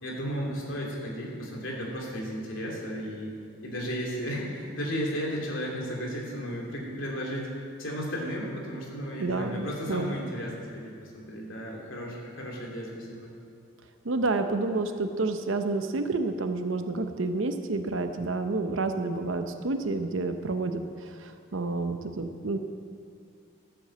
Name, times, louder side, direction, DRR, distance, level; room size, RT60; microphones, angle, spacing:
voice 1, 0.0-3.4 3.6-7.5 7.8-13.3, equal, 75° left, -2 dB, 2.8 m, -34 dB
voice 2, 9.2-10.2 14.0-22.6, right 3 dB, 75° right, 8 dB, 0.7 m, -29 dB
12.5 x 7.8 x 7.6 m, 2.4 s
head